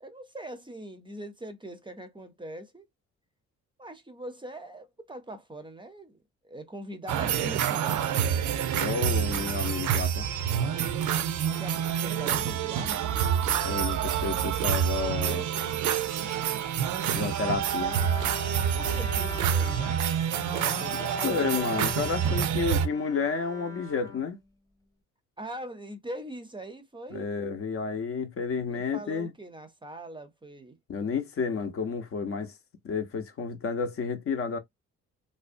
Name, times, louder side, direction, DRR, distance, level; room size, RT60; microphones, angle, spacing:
voice 1, 0.0-2.9 3.8-6.2 6.4-8.2 11.5-13.1 18.7-20.1 20.3-21.7 25.4-27.3 28.7-30.8, right 1 dB, 15° right, 0.5 m, -42 dB
sound 1, 7.1-22.9, right 9 dB, 75° right, 0.5 m, -27 dB
voice 2, 8.7-10.3 13.6-15.5 17.1-18.0 21.2-24.4 27.1-29.3 30.9-32.5 32.8-34.6, left 5 dB, 50° left, 0.6 m, -31 dB
Bowed string instrument, 17.5-24.8, left 4 dB, 10° left, 0.8 m, -42 dB
2.6 x 2.1 x 2.4 m
cardioid pair, 90°, 30 cm